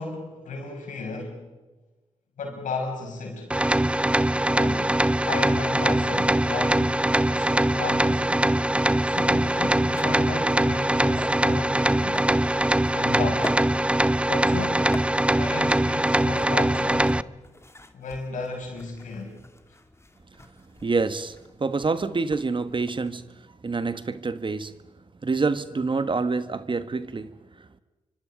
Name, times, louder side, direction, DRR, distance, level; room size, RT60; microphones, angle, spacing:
voice 1, 0.0-1.5 2.4-3.5 4.5-5.0 5.2-8.3 9.0-12.3 12.9-13.6 14.2-15.0 15.3-17.2 17.9-19.4, left 3 dB, 75° left, 6.5 m, -34 dB
sound 1, 3.5-17.2, right 1 dB, 10° right, 0.7 m, -22 dB
sound 2, 7.1-23.2, left 2 dB, 20° left, 2.4 m, -45 dB
voice 2, 20.8-24.8 25.2-27.8, right 4 dB, 40° right, 1.4 m, -27 dB
28.0 x 25.0 x 5.2 m
hypercardioid pair, 40°, 13 cm